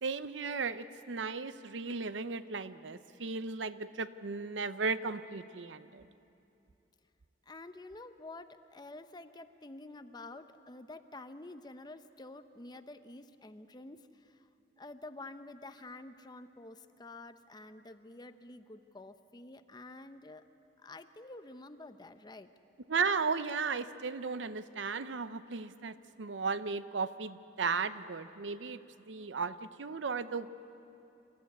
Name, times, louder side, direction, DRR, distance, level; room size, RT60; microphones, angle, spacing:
voice 1, 0.0-6.1 22.9-28.8 29.1-30.5, right 4 dB, 80° right, 13 dB, 0.7 m, -35 dB
voice 2, 7.4-14.5 14.8-20.5 20.8-22.5, left 2 dB, 25° left, 10 dB, 0.7 m, -49 dB
26.5 x 14.0 x 9.4 m, 2.8 s
head